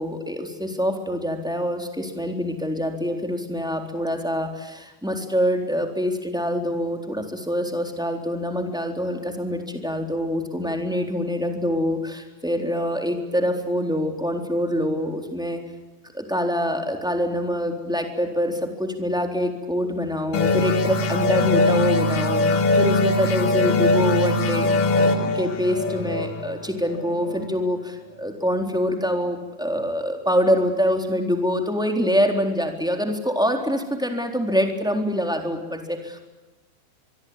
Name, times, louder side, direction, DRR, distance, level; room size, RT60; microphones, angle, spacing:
voice 1, 0.0-15.6 16.1-36.2, equal, ahead, 4 dB, 3.0 m, -25 dB
sound 1, 20.3-27.6, left 2 dB, 55° left, 3.1 m, -21 dB
24.5 x 24.0 x 9.7 m, 1.1 s
omnidirectional pair, 5.2 m